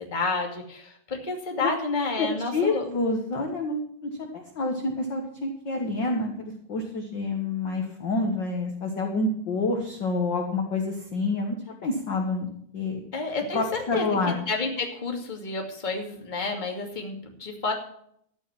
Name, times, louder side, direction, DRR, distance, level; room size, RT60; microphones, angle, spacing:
voice 1, 0.0-2.8 13.1-13.6 13.9-17.7, left 3 dB, 15° left, 1 dB, 1.9 m, -30 dB
voice 2, 2.2-11.6 11.8-12.5 12.7-13.0 13.5-14.3, left 3 dB, 50° left, 2 dB, 1.4 m, -28 dB
13.5 x 9.5 x 5.9 m, 0.67 s
omnidirectional pair, 4.2 m